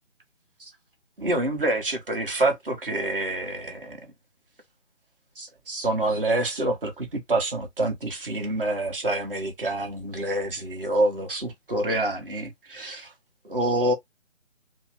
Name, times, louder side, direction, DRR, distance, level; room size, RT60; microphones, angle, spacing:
voice 1, 1.2-4.0 5.4-13.1 13.4-13.9, right 1 dB, 45° right, 1.3 m, -27 dB
2.9 x 2.1 x 3.1 m
figure-of-eight pair, 150°, 38 cm